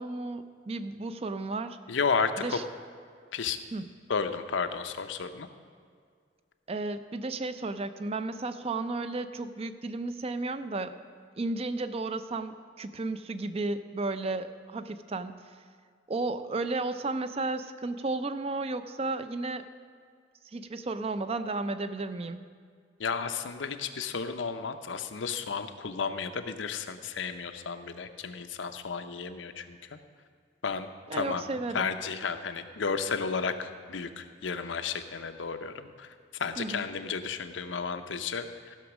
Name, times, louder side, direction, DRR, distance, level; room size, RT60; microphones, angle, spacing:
voice 1, 0.0-1.8 2.4-2.6 3.7-3.9 6.7-10.9 11.4-15.4 16.1-19.6 20.5-22.4 31.1-31.9 36.6-36.9, right 3 dB, 35° right, 11 dB, 0.5 m, -33 dB
voice 2, 1.9-2.6 3.3-3.6 4.1-5.5 23.0-30.0 30.6-31.4 31.7-38.8, left 5 dB, 90° left, 8 dB, 0.7 m, -33 dB
15.0 x 6.2 x 6.0 m, 2.1 s
head